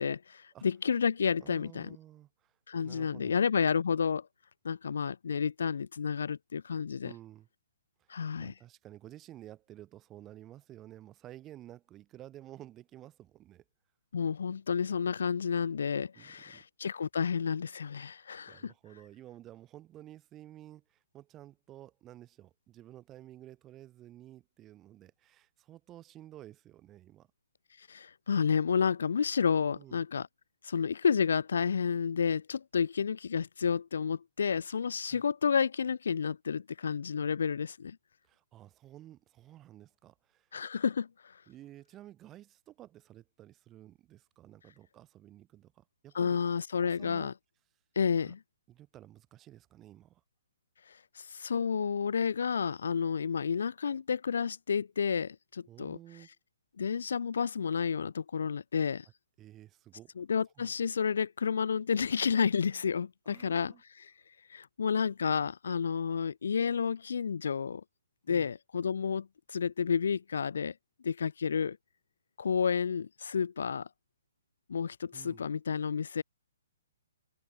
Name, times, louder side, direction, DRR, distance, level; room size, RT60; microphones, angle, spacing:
voice 1, 0.0-2.0 2.7-4.3 4.6-7.1 8.1-8.5 14.1-18.7 27.8-30.3 30.6-38.0 40.5-41.4 46.1-47.3 48.0-48.4 50.9-56.0 56.8-59.1 60.2-64.1 64.5-67.8 68.3-70.7 71.0-71.8 72.4-73.9 74.7-76.2, left 6 dB, 65° left, 0.4 m, -31 dB
voice 2, 1.4-2.6 2.8-3.4 7.0-7.5 8.0-8.1 8.4-13.6 16.1-16.6 18.1-27.3 29.7-30.0 35.0-35.2 38.2-40.5 41.5-46.4 46.8-47.3 48.2-48.3 48.7-50.2 55.7-56.3 59.4-60.1 60.6-60.7 63.3-63.8 68.3-68.5 75.1-75.5, right 13 dB, 10° right, 2.8 m, -52 dB
open air
hypercardioid pair, 175°, 0 cm